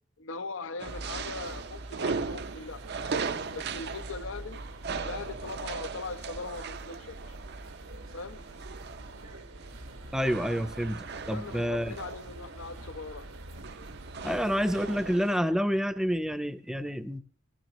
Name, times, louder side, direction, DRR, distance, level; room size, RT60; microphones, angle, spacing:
voice 1, 0.2-4.6 5.0-7.4 8.1-8.4 11.3-13.3, left 4 dB, 70° left, 11 dB, 0.7 m, -40 dB
sound 1, 0.8-15.4, right 5 dB, 50° right, 0.6 m, -39 dB
sound 2, 0.8-15.2, right 2 dB, 85° right, 1.4 m, -45 dB
voice 2, 10.1-12.0 14.2-17.2, equal, 5° right, 10 dB, 0.5 m, -28 dB
20.0 x 15.5 x 3.0 m, 0.41 s
head